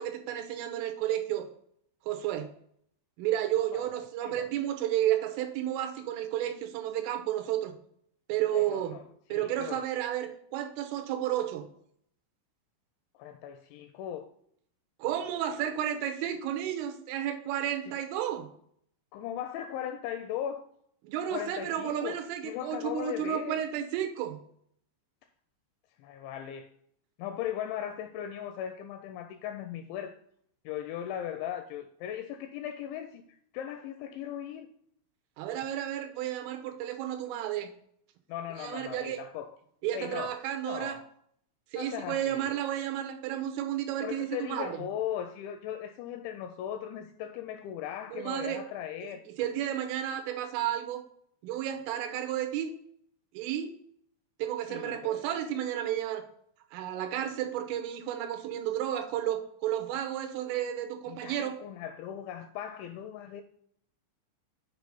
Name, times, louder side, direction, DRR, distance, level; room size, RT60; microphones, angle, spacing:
voice 1, 0.0-1.5 2.1-2.5 3.2-7.7 8.3-9.0 9.3-11.6 15.0-18.5 21.0-24.4 35.4-37.7 38.6-39.2 39.8-41.0 41.7-44.8 48.1-48.6 49.0-51.0 51.4-52.7 53.3-53.7 54.4-56.2 56.7-61.6, right 11 dB, 90° right, 3.4 m, -32 dB
voice 2, 8.5-9.0 9.3-9.9 13.1-14.3 17.9-18.0 19.1-20.7 21.3-22.2 22.4-23.6 26.0-26.7 27.2-30.2 30.7-33.2 33.5-34.7 38.3-39.6 39.9-41.1 41.8-42.5 44.0-49.2 54.7-55.2 61.1-63.4, left 10 dB, 85° left, 2.6 m, -38 dB
7.7 x 4.7 x 5.3 m
omnidirectional pair, 5.7 m